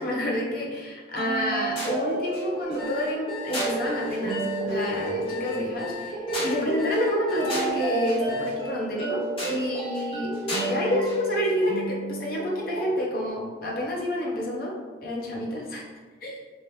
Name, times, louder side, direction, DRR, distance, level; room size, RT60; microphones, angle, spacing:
voice 1, 0.0-10.3 10.6-14.7 15.0-15.8 16.2-16.4, left 1 dB, 55° left, -3 dB, 0.7 m, -29 dB
sound 1, 1.2-13.3, right 1 dB, 30° left, 1.3 m, -30 dB
sound 2, 2.6-8.5, left 8 dB, 5° left, 0.6 m, -40 dB
2.9 x 2.5 x 3.2 m, 1.4 s
head